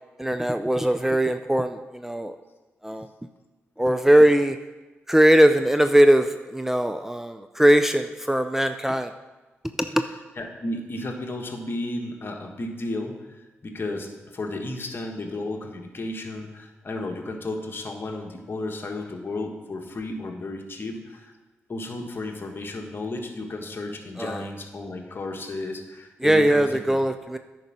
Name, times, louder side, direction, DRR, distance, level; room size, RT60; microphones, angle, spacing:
voice 1, 0.2-2.3 2.8-3.1 3.8-4.6 5.1-6.3 6.5-9.1 9.9-10.0 24.2-24.4 26.2-27.4, right 1 dB, 5° right, 8 dB, 0.5 m, -20 dB
voice 2, 10.0-21.3 21.7-27.0, left 2 dB, 45° left, 2 dB, 1.5 m, -33 dB
9.5 x 5.3 x 6.1 m, 1.2 s
supercardioid pair, 55°, 5 cm